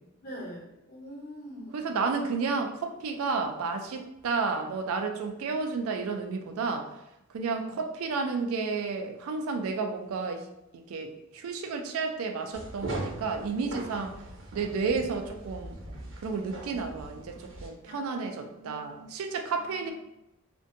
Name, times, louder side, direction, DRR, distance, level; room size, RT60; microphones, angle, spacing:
voice 1, 0.2-1.9 7.5-7.8 17.9-19.1 19.5-19.9, equal, 40° left, -5 dB, 0.9 m, -44 dB
voice 2, 1.7-6.9 7.3-10.5 10.7-14.2 14.5-15.7 16.2-19.9, right 4 dB, 75° right, 5 dB, 0.3 m, -31 dB
sound 1, 12.5-17.7, right 1 dB, 60° right, 0.7 m, -40 dB
2.5 x 2.1 x 2.6 m, 0.88 s
head